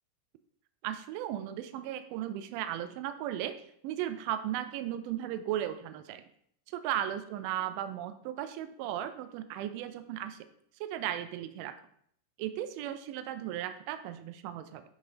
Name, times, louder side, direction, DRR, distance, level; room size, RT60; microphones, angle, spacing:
voice 1, 0.8-3.5 3.8-6.2 6.7-10.4 10.8-11.8 12.4-14.8, right 11 dB, 45° right, 11 dB, 0.5 m, -36 dB
5.9 x 5.6 x 3.0 m, 0.67 s
figure-of-eight pair, 90°, 0 cm